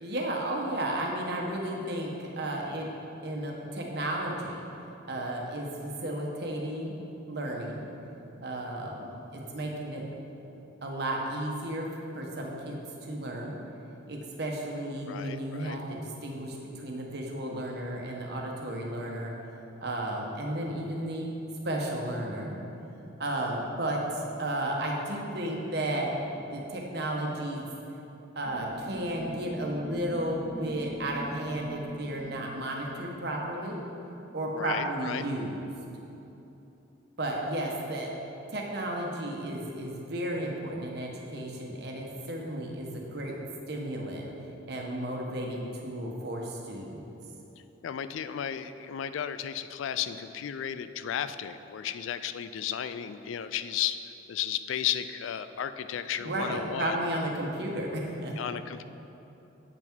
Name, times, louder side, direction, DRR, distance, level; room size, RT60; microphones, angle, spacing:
voice 1, 0.0-2.9 3.2-4.6 5.1-6.9 7.3-7.8 8.4-10.0 10.8-11.9 12.1-13.6 14.1-19.3 19.8-21.3 21.6-22.6 23.2-24.0 24.4-26.1 26.5-27.7 28.3-33.8 34.3-35.6 37.2-38.1 38.5-43.3 43.7-44.2 44.7-47.0 56.2-58.3, right 1 dB, 60° right, -1 dB, 1.1 m, -33 dB
voice 2, 15.1-15.8 34.5-35.3 47.8-54.0 54.3-57.1 58.4-58.8, left 9 dB, 85° left, 12 dB, 0.3 m, -34 dB
sound 1, 28.4-33.4, equal, ahead, 1.3 m, -43 dB
8.1 x 5.7 x 4.5 m, 3.0 s
head